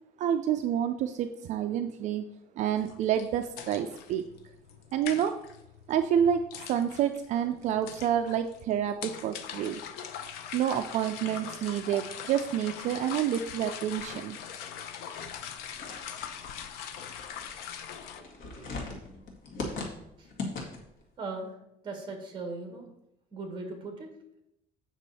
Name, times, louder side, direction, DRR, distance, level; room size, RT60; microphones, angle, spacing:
voice 1, 0.2-2.2 2.6-4.2 4.9-5.3 5.9-6.4 6.7-9.8 10.5-14.4, right 9 dB, 50° right, 7 dB, 0.4 m, -28 dB
sound 1, 2.8-18.2, left 8 dB, 85° left, 0.8 m, -42 dB
sound 2, 15.2-21.0, left 3 dB, 60° left, 2.0 m, -40 dB
voice 2, 21.2-21.6 21.8-22.9 23.3-24.1, right 3 dB, 30° right, 4 dB, 1.8 m, -38 dB
8.0 x 6.1 x 4.2 m, 0.82 s
cardioid pair, 165°, 16 cm